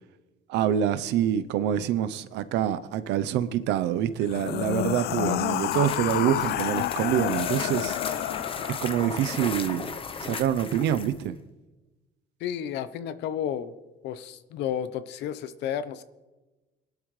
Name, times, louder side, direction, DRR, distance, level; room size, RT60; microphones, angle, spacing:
voice 1, 0.5-8.0 8.8-9.9 10.2-11.4, right 10 dB, 85° right, 0.8 m, -26 dB
sound 1, 4.2-9.4, left 13 dB, 65° left, 0.4 m, -29 dB
sound 2, 5.7-11.3, left 5 dB, 30° left, 0.9 m, -36 dB
voice 2, 12.4-13.7 14.0-16.0, left 9 dB, 85° left, 0.9 m, -32 dB
22.5 x 12.0 x 3.3 m
cardioid pair, 120°, 17 cm